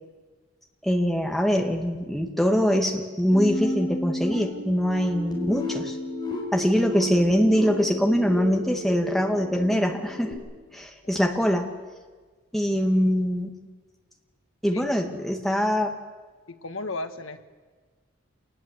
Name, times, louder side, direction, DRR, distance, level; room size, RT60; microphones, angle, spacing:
voice 1, 0.8-6.0 6.5-10.3 10.7-11.7 12.5-13.6 14.6-15.9, equal, ahead, 2 dB, 2.1 m, -23 dB
sound 1, 3.3-10.3, left 1 dB, 20° left, 5.0 m, -32 dB
voice 2, 16.5-17.4, left 2 dB, 80° left, 7 dB, 1.6 m, -34 dB
27.5 x 20.0 x 8.2 m, 1.4 s
head